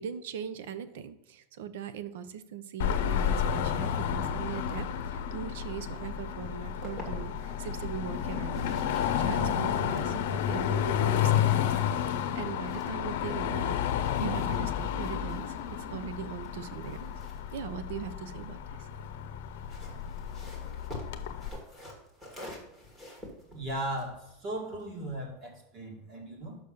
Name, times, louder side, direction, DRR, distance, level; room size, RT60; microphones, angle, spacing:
voice 1, 0.0-13.8 14.2-17.2 17.5-18.9, right 8 dB, 75° right, 13 dB, 0.7 m, -40 dB
Car passing by / Traffic noise roadway noise / Engine, 2.8-21.5, left 9 dB, 70° left, 0.8 m, -31 dB
sound 1, 6.6-7.5 8.1-13.5 13.8-18.4 19.4-25.0, left 1 dB, 10° right, 1.8 m, -49 dB
voice 2, 23.5-26.6, right 1 dB, 35° right, 0 dB, 2.3 m, -37 dB
6.7 x 5.9 x 5.3 m, 0.89 s
supercardioid pair, 175°, 0 cm